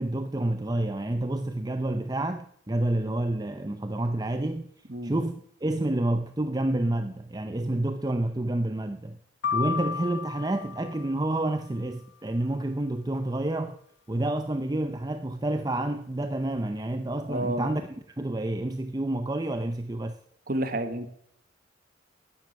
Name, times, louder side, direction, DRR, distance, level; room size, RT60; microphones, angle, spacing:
voice 1, 0.0-4.7 5.0-9.2 9.5-13.8 14.1-17.8 18.2-20.2, right 1 dB, 20° right, 0.6 m, -29 dB
sound 1, 9.4-11.6, left 6 dB, 70° left, 1.1 m, -33 dB
voice 2, 17.3-17.7 20.5-21.1, right 1 dB, 50° right, 1.4 m, -30 dB
12.0 x 9.4 x 7.9 m
head